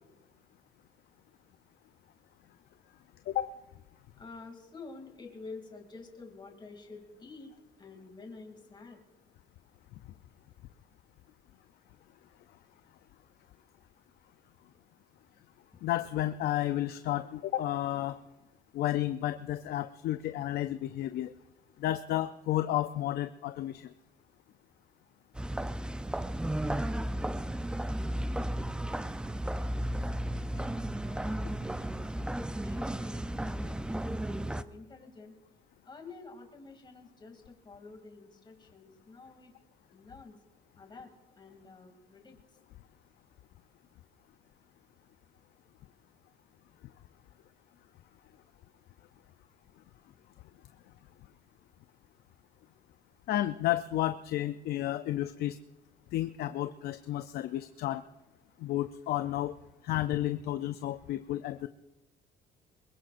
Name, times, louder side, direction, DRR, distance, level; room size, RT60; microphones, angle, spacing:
voice 1, 4.2-7.5 7.8-9.0 30.5-32.3 32.5-35.3 35.9-39.5 39.9-40.4 40.8-41.1 41.4-42.4, left 3 dB, 25° left, 3 dB, 2.6 m, -49 dB
voice 2, 15.8-18.2 18.7-21.3 21.8-23.9 53.3-55.6 56.1-58.0 58.6-59.5 59.8-61.7, left 13 dB, 70° left, 10 dB, 0.5 m, -32 dB
sound 1, 25.4-34.6, right 1 dB, 5° right, 0.5 m, -34 dB
22.5 x 21.5 x 2.6 m, 1.0 s
cardioid pair, 110°, 17 cm